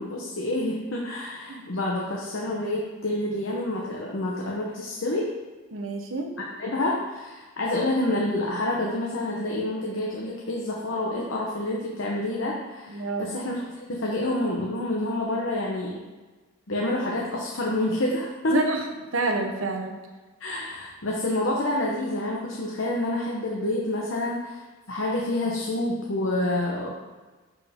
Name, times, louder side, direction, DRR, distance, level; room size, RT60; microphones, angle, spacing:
voice 1, 0.0-5.3 6.4-16.0 16.7-18.6 20.4-24.6 24.9-27.0, left 1 dB, 80° left, -3 dB, 1.0 m, -28 dB
voice 2, 1.5-1.8 5.7-6.3 12.9-13.3 18.5-18.8 19.1-19.9, right 3 dB, 85° right, 3 dB, 1.0 m, -28 dB
11.0 x 4.7 x 3.6 m, 1.3 s
head